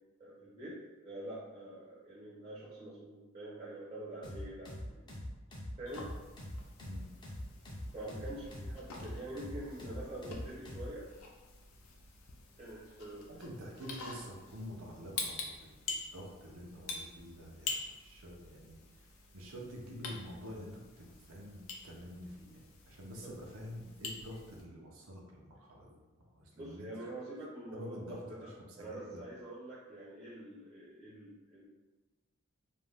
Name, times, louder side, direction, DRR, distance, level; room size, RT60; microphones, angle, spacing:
voice 1, 0.2-5.1 5.8-6.1 7.9-11.1 12.6-13.4 23.2-23.3 26.5-28.0 28.3-28.5 28.8-31.6, right 1 dB, 30° right, -8 dB, 0.6 m, -46 dB
sound 1, 4.2-10.9, equal, 20° left, 0.4 m, -43 dB
sound 2, 5.9-24.6, left 4 dB, 75° left, 0.5 m, -47 dB
voice 2, 13.3-26.0 26.3-26.9 27.7-29.4, equal, 85° right, -1 dB, 0.6 m, -48 dB
2.5 x 2.1 x 3.2 m, 1.2 s
head